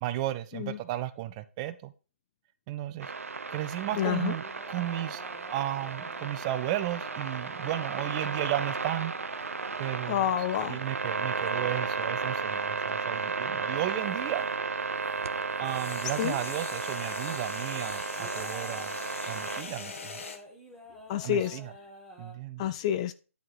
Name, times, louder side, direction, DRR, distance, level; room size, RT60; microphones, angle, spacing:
voice 1, 0.0-1.9 2.7-3.1 3.5-5.2 5.5-9.1 9.8-10.2 10.7-14.5 15.6-18.9 19.3-20.1 21.2-21.7 22.2-22.6, right 14 dB, 25° right, 0.6 m, -34 dB
sound 1, 3.0-19.6, right 4 dB, 75° right, 0.8 m, -34 dB
sound 2, 3.5-11.6 13.8-14.5 14.8-16.3 16.7-16.8 18.1-22.3, equal, 5° left, 2.3 m, -49 dB
voice 2, 4.0-4.3 10.1-10.8 16.2-16.4 21.1-21.6 22.6-23.1, left 11 dB, 25° left, 0.5 m, -28 dB
sound 3, 9.4-14.6 15.6-20.4, left 4 dB, 65° left, 1.7 m, -42 dB
10.5 x 4.8 x 5.6 m
figure-of-eight pair, 145°, 8 cm